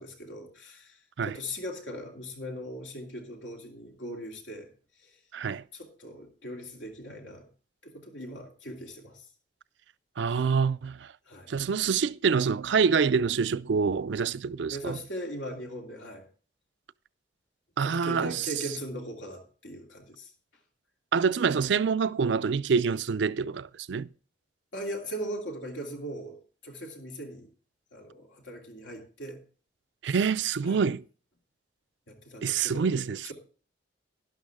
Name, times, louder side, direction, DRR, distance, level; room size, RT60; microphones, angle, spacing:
voice 1, 0.0-4.7 5.0-5.2 5.7-7.5 7.8-9.3 10.3-10.6 11.3-11.5 14.7-16.3 17.8-20.3 24.7-26.4 26.6-27.5 27.9-29.4 30.6-30.8 32.1-33.0, equal, 85° left, 3.1 m, -39 dB
voice 2, 5.3-5.6 10.2-11.1 11.5-15.0 17.8-18.5 21.1-24.1 30.0-31.0 32.4-33.3, right 6 dB, 70° right, 0.4 m, -26 dB
11.5 x 11.5 x 3.6 m
head